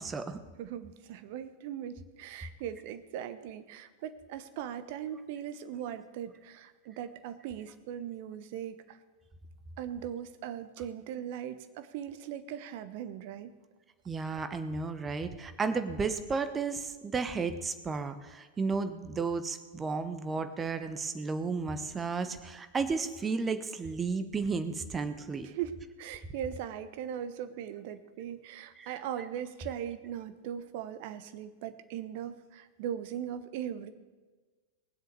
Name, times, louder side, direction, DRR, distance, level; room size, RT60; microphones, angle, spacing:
voice 1, 0.0-0.4 14.1-25.5 28.8-28.9, right 4 dB, 20° right, 9 dB, 1.1 m, -33 dB
voice 2, 0.6-9.0 9.8-13.5 25.4-33.9, right 9 dB, 50° right, 11 dB, 1.0 m, -39 dB
19.5 x 7.8 x 6.8 m, 1.3 s
figure-of-eight pair, 90°, 0 cm